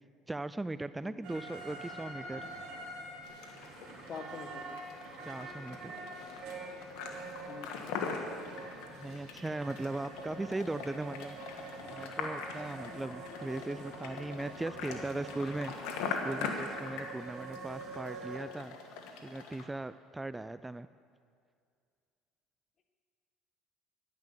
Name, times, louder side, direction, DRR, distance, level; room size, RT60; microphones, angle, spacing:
voice 1, 0.3-2.4 5.3-5.9 9.0-11.4 11.9-15.7 16.1-18.7 19.2-20.9, right 2 dB, 15° right, 14 dB, 0.3 m, -38 dB
sound 1, 1.2-18.4, right 2 dB, 65° right, 2.9 m, -46 dB
sound 2, 3.2-19.7, left 5 dB, 75° left, 1.6 m, -42 dB
voice 2, 4.1-4.7 7.5-8.2, left 5 dB, 45° left, 6 dB, 1.7 m, -46 dB
10.5 x 10.5 x 7.6 m, 2.3 s
supercardioid pair, 85°, 0 cm